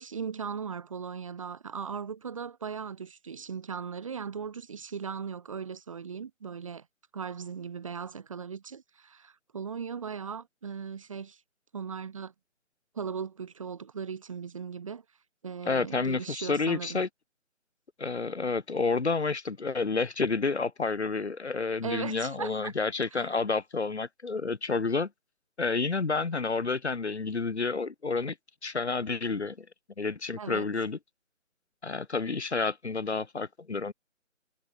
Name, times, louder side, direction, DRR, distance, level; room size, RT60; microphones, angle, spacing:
voice 1, 0.0-6.8 7.1-11.4 11.7-12.3 12.9-15.0 15.4-17.0 21.8-22.7 23.1-23.4 30.4-30.7, right 6 dB, 25° right, 1.6 m, -38 dB
voice 2, 15.7-17.1 18.0-25.1 25.6-28.4 28.6-29.7 30.0-31.0 31.8-33.9, left 4 dB, 55° left, 1.9 m, -30 dB
figure-of-eight pair, 155°, 39 cm